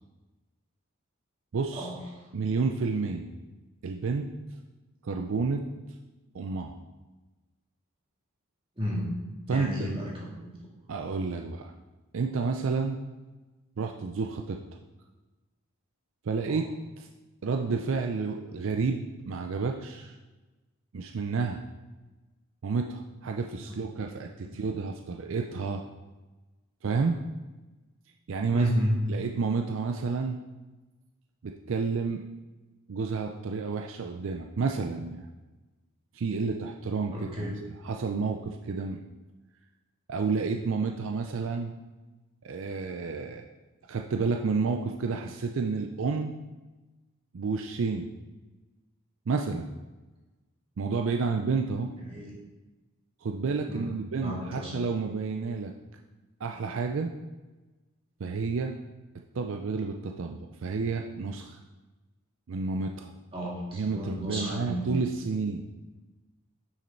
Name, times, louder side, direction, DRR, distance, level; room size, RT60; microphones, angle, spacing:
voice 1, 1.5-1.9 2.3-3.3 3.8-4.3 5.0-5.6 6.3-6.8 9.5-10.0 10.9-11.7 12.1-13.0 13.8-14.6 16.2-16.7 17.0-17.1 17.4-20.2 20.9-21.6 22.6-25.8 26.8-27.2 28.3-28.7 29.1-30.4 31.4-32.2 32.9-35.3 36.1-37.5 37.8-39.0 40.1-41.7 42.4-43.4 43.9-46.3 47.3-48.1 49.3-49.7 50.8-51.9 53.2-55.7 56.4-57.1 58.2-58.7 59.3-61.6 62.5-63.1 63.7-65.7, right 4 dB, 65° right, 3 dB, 0.4 m, -30 dB
voice 2, 8.8-9.1 9.5-10.5 16.5-16.6 24.4-24.8 28.5-29.0 37.1-37.5 52.1-52.3 53.7-54.7 63.3-64.9, equal, 25° right, -4 dB, 1.9 m, -32 dB
6.5 x 6.2 x 4.4 m, 1.2 s
head